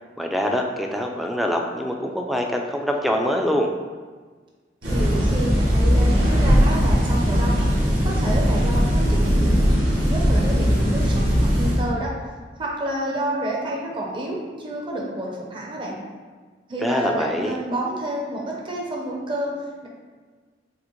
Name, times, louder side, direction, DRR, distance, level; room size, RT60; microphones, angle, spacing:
voice 1, 0.2-3.7 16.8-17.6, equal, ahead, 2 dB, 0.3 m, -24 dB
voice 2, 4.8-7.7 8.0-9.7 10.0-11.2 11.5-12.1 12.6-16.0 16.7-19.5, right 1 dB, 30° right, -3 dB, 0.7 m, -29 dB
sound 1, 4.8-11.8, equal, 70° right, 1.2 m, -19 dB
6.2 x 2.1 x 3.0 m, 1.4 s
head